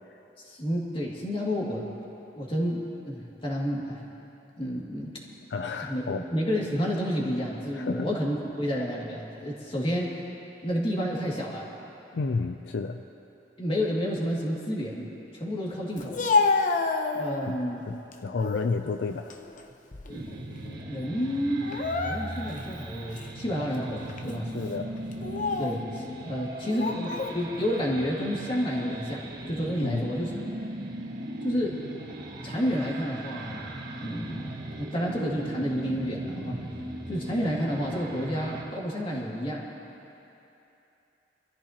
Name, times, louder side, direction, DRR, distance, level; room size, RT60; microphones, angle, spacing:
voice 1, 0.4-1.8 2.3-4.0 4.6-5.1 5.8-6.0 6.3-10.1 10.6-11.7 13.6-15.1 15.3-16.1 17.1-17.8 20.1-20.2 20.8-24.5 25.6-30.5 31.4-31.8 32.4-34.5 34.8-36.6 37.1-39.7, equal, 30° left, -4 dB, 2.4 m, -30 dB
voice 2, 5.5-6.3 7.7-8.1 12.1-13.1 17.4-17.6 17.9-19.3 24.4-24.9 29.8-30.0, left 4 dB, 70° left, 6 dB, 0.5 m, -31 dB
Speech, 16.0-17.6 18.1-18.7 19.1-20.3 20.6-20.8 21.6-22.6 23.2-23.3 24.1-24.3 25.1-25.8 26.7-27.4, left 4 dB, 45° left, 0.8 m, -28 dB
sound 1, 20.1-38.6, right 1 dB, 60° right, 1.6 m, -39 dB
25.0 x 14.0 x 3.0 m, 2.9 s
head